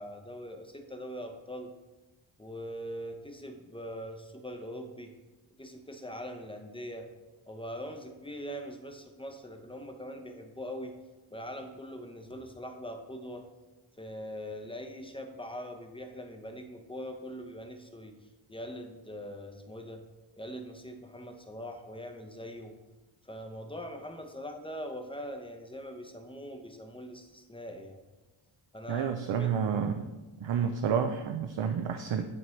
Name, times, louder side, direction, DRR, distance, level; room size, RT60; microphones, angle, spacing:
voice 1, 0.0-1.7 2.4-5.1 5.6-7.1 7.5-11.0 11.3-13.4 14.0-18.1 18.5-20.0 20.4-22.7 23.2-28.0 28.7-29.5, equal, 10° left, 5 dB, 0.7 m, -42 dB
voice 2, 28.9-30.1 30.4-32.2, right 7 dB, 65° right, 6 dB, 0.6 m, -30 dB
9.8 x 4.4 x 3.2 m, 1.1 s
wide cardioid pair, 80°, 50 cm